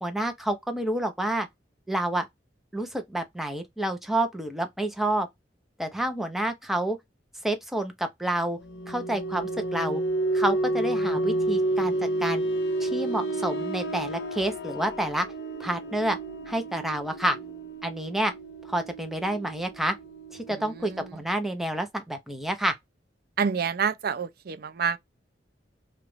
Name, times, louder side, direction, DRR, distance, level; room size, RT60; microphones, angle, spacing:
voice 1, 0.0-1.5 1.9-2.3 2.7-5.3 5.8-7.0 7.4-8.6 8.9-10.0 10.3-12.4 12.8-15.3 15.6-16.2 16.5-17.4 17.8-18.3 18.7-20.0 20.3-22.7, right 1 dB, ahead, 0.7 m, -29 dB
sound 1, 8.6-21.1, right 2 dB, 70° left, 0.6 m, -30 dB
voice 2, 20.5-21.2 23.4-25.0, right 6 dB, 60° right, 0.5 m, -28 dB
3.0 x 2.5 x 3.1 m
head